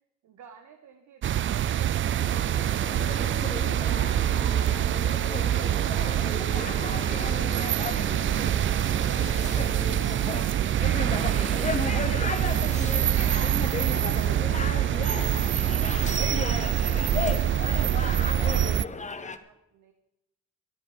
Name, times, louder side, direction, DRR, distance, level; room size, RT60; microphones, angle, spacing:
voice 1, 0.2-3.7 15.6-15.9 16.3-19.9, right 7 dB, 75° right, 5 dB, 1.4 m, -54 dB
sound 1, 1.2-18.8, right 11 dB, 40° right, 0.4 m, -25 dB
Laughter / Crowd, 2.0-5.5, left 5 dB, 50° left, 3.0 m, -51 dB
sound 2, 2.2-19.4, left 4 dB, 25° left, 1.0 m, -35 dB
voice 2, 4.1-4.2, right 1 dB, 10° right, 5 dB, 2.2 m, -49 dB
13.5 x 11.0 x 5.1 m, 0.90 s
cardioid pair, 90°, 30 cm